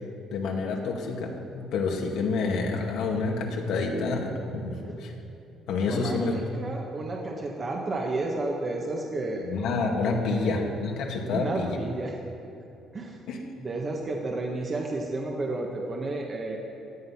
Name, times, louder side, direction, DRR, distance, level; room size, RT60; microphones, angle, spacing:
voice 1, 0.3-5.1 5.7-6.4 9.5-11.8 13.3-13.4, left 4 dB, 75° left, 0 dB, 2.2 m, -28 dB
voice 2, 5.9-9.5 10.3-10.8 11.3-12.2 12.9-13.2 13.6-16.6, right 2 dB, 30° right, 0 dB, 1.5 m, -32 dB
16.0 x 10.0 x 5.8 m, 2.8 s
cardioid pair, 115°, 0 cm